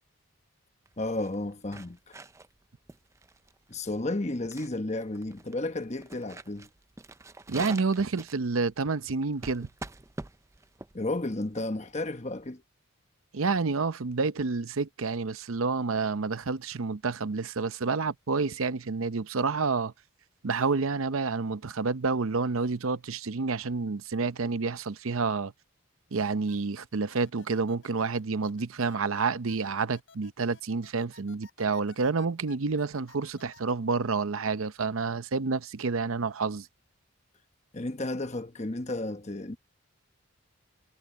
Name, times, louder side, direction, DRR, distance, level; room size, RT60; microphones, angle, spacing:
sound 1, 0.9-12.5, right 2 dB, 15° right, 0.4 m, -46 dB
voice 1, 1.0-2.1 3.7-6.7 10.9-12.6 37.7-39.6, left 2 dB, 30° left, 1.1 m, -33 dB
voice 2, 7.5-9.7 13.3-19.9 20.4-25.5 26.1-36.7, right 4 dB, 75° right, 0.7 m, -29 dB
sound 2, 26.2-33.7, left 4 dB, 65° left, 5.8 m, -56 dB
head